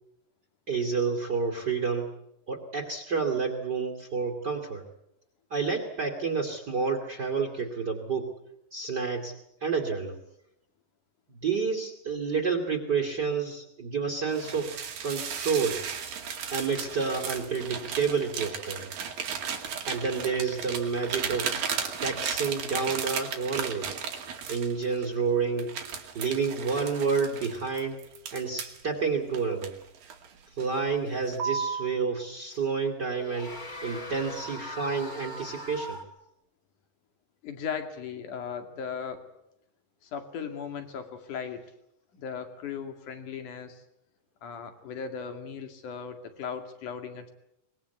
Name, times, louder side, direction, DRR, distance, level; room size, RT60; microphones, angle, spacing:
voice 1, 0.7-2.1 2.5-4.8 5.5-8.3 8.7-9.3 9.6-10.2 11.3-15.8 16.5-18.9 19.8-23.9 24.5-25.7 26.1-28.0 28.3-29.7 30.6-33.5 33.8-36.0, right 5 dB, 30° right, 1 dB, 2.7 m, -29 dB
sound 1, 14.3-25.1 25.6-28.8 29.3-30.3 30.6-30.9 31.3-31.9, right 7 dB, 80° right, 4.1 m, -35 dB
sound 2, 31.1-31.2 32.5-32.7 33.1-36.1, equal, 15° left, 2.1 m, -40 dB
voice 2, 37.4-39.2 40.0-41.6 42.2-43.8 44.4-47.3, left 7 dB, 60° left, 7 dB, 3.8 m, -37 dB
25.0 x 21.5 x 8.2 m, 0.81 s
omnidirectional pair, 4.1 m